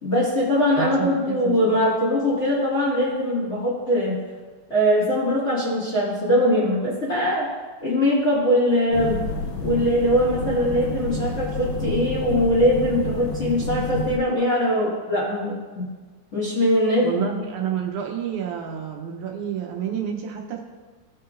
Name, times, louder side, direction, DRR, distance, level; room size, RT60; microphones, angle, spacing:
voice 1, 0.0-4.2 4.7-7.4 7.8-9.2 9.6-15.9 16.3-17.4, equal, 25° left, -8 dB, 1.8 m, -21 dB
voice 2, 0.8-1.7 17.0-20.6, right 8 dB, 75° right, 1 dB, 2.2 m, -29 dB
sound 1, 8.9-14.2, left 2 dB, 80° left, 1.1 m, -29 dB
15.5 x 5.9 x 2.5 m, 1.4 s
omnidirectional pair, 3.6 m